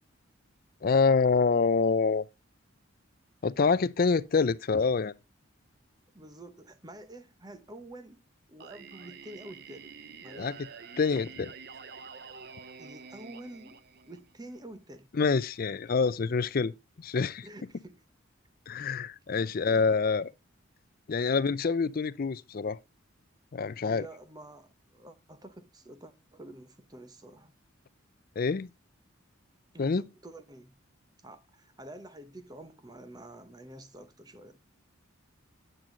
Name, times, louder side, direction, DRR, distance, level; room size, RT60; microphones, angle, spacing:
voice 1, 0.8-2.2 3.4-5.1 10.4-10.5 11.0-11.5 15.1-17.4 18.7-20.3 21.1-22.8 23.5-24.0 28.4-28.7 29.8-30.0, left 4 dB, 45° left, 0.4 m, -26 dB
voice 2, 6.1-8.2 8.5-9.9 10.2-10.6 12.8-15.1 16.0-16.1 17.4-18.0 19.6-19.9 23.8-27.5 29.7-30.7 31.2-34.6, right 1 dB, 20° right, 0.9 m, -48 dB
Singing, 8.6-14.5, right 5 dB, 50° right, 0.6 m, -48 dB
9.1 x 7.7 x 3.8 m
head